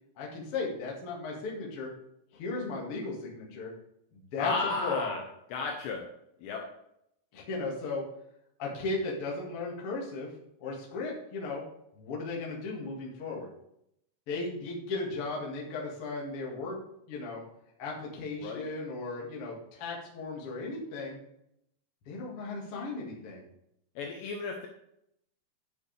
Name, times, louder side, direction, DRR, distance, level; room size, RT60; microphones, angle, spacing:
voice 1, 0.2-1.9 2.3-3.7 4.1-4.5 4.8-5.2 7.3-8.1 8.6-10.3 10.6-11.6 11.9-13.5 14.3-16.8 17.1-17.4 17.8-21.2 22.0-23.4, left 3 dB, 55° left, -3 dB, 1.5 m, -36 dB
voice 2, 4.4-5.2 5.5-6.0 6.4-6.7 18.4-18.7 24.0-24.7, left 4 dB, 75° left, 2 dB, 2.7 m, -33 dB
11.0 x 6.6 x 3.4 m, 0.78 s
omnidirectional pair, 5.8 m